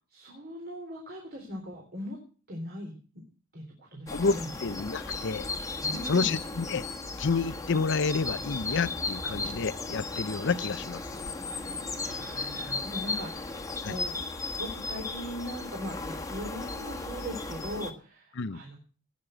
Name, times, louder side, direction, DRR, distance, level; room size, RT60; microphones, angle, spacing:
voice 1, 0.1-2.2 2.5-3.2 3.5-3.6 3.9-4.5 5.8-6.3 11.4-14.1 14.6-18.8, equal, 45° right, 3.7 m, -40 dB
voice 2, 4.1-5.5 6.0-6.9 7.2-11.0 13.8-14.0 18.4-18.6, left 4 dB, 60° left, 0.7 m, -29 dB
sound 1, 4.1-17.9, left 3 dB, 15° left, 1.5 m, -35 dB
18.5 x 6.7 x 7.8 m
head